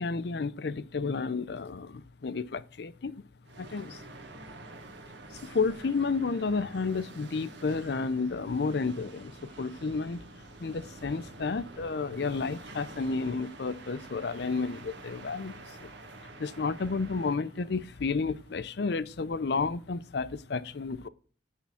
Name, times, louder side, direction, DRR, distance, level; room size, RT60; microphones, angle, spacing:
voice 1, 0.0-3.2 3.6-4.0 5.4-10.2 10.6-15.9 16.4-21.1, left 4 dB, 60° left, 0.5 m, -31 dB
sound 1, 3.5-18.6, right 2 dB, 80° right, 1.6 m, -48 dB
10.5 x 3.6 x 7.0 m
head